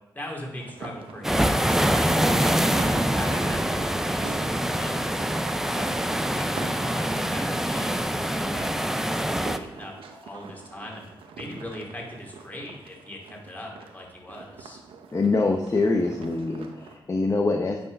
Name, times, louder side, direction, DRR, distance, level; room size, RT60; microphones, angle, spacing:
voice 1, 0.1-6.0 6.3-11.1 11.3-14.8, left 1 dB, 20° left, -1 dB, 2.9 m, -40 dB
sound 1, 0.6-17.0, right 5 dB, 85° right, 0.9 m, -43 dB
sound 2, 1.2-9.6, equal, 5° right, 0.6 m, -25 dB
voice 2, 15.1-17.9, left 3 dB, 35° left, 3 dB, 0.9 m, -24 dB
9.4 x 4.7 x 5.4 m, 1.0 s
cardioid pair, 60°, 9 cm